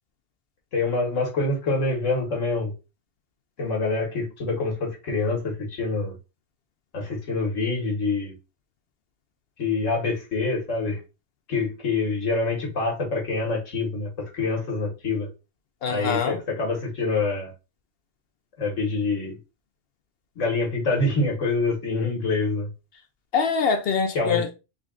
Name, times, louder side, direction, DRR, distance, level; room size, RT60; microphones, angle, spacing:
voice 1, 0.7-2.7 3.6-6.1 6.9-8.3 9.6-11.0 11.5-15.3 15.9-17.5 18.6-19.4 20.4-22.7 24.2-24.4, left 3 dB, 75° left, 1.7 m, -26 dB
voice 2, 15.8-16.4 23.3-24.5, left 5 dB, 60° left, 0.7 m, -24 dB
3.7 x 2.3 x 3.6 m
omnidirectional pair, 1.3 m